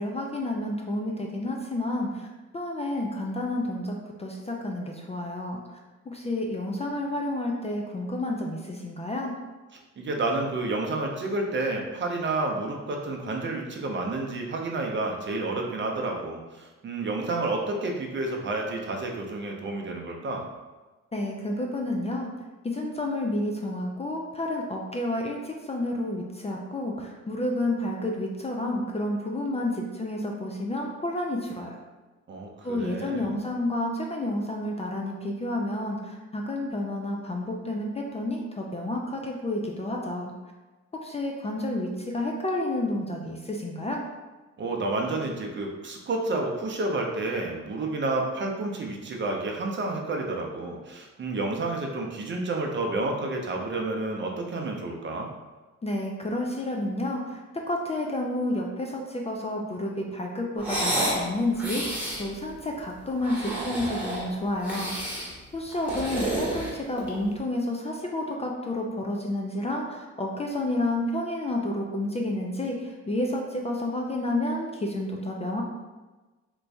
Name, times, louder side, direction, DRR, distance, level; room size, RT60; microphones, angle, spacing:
voice 1, 0.0-2.3 2.5-5.6 6.1-9.3 21.1-22.3 22.6-31.8 32.6-40.3 41.0-44.0 55.8-57.4 57.7-65.0 65.5-75.6, left 1 dB, 20° left, 0 dB, 0.4 m, -30 dB
voice 2, 10.0-20.4 32.3-33.3 44.6-55.3, right 2 dB, 40° right, 1 dB, 0.6 m, -30 dB
sound 1, 60.6-61.2 61.6-62.2 63.1-64.3 64.6-65.3 65.7-67.2, right 1 dB, 5° right, 1.2 m, -30 dB
3.0 x 2.6 x 3.4 m, 1.2 s
cardioid pair, 90°, 30 cm